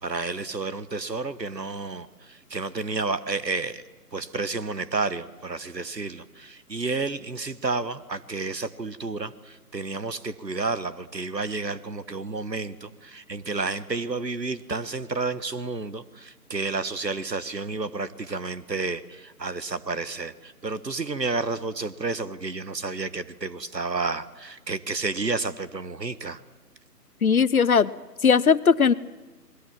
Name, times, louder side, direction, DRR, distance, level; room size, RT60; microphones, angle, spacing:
voice 1, 0.0-3.8 4.1-26.4, right 3 dB, 90° right, 15 dB, 1.5 m, -31 dB
voice 2, 27.2-27.9 28.2-28.9, left 6 dB, 60° left, 17 dB, 0.9 m, -18 dB
28.5 x 21.0 x 7.5 m, 1.2 s
figure-of-eight pair, 150°, 48 cm